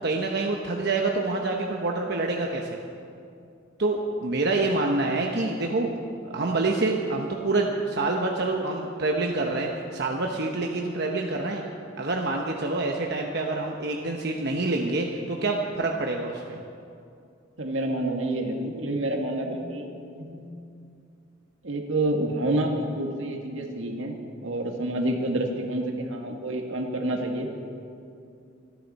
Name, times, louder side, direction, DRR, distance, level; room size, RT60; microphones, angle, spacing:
voice 1, 0.0-2.8 3.8-5.9 6.2-11.6 12.0-16.6, right 2 dB, 55° right, 1 dB, 1.0 m, -27 dB
voice 2, 17.6-19.9 20.2-20.5 21.6-24.2 24.4-27.5, right 1 dB, 80° right, 2 dB, 1.8 m, -28 dB
25.5 x 10.5 x 4.2 m, 2.5 s
head